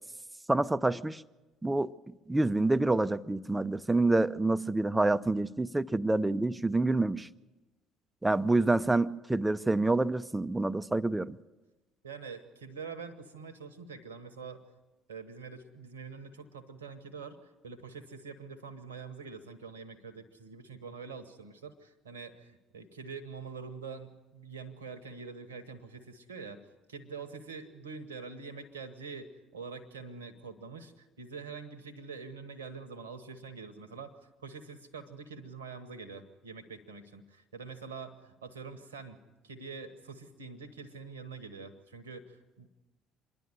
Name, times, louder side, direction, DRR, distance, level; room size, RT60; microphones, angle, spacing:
voice 1, 0.5-1.2 1.6-7.3 8.2-11.4, right 2 dB, 10° right, 16 dB, 0.7 m, -27 dB
voice 2, 12.0-14.6 15.1-26.6 26.9-42.7, right 5 dB, 80° right, 12 dB, 1.2 m, -45 dB
26.5 x 11.0 x 9.5 m, 1.1 s
figure-of-eight pair, 55°, 0 cm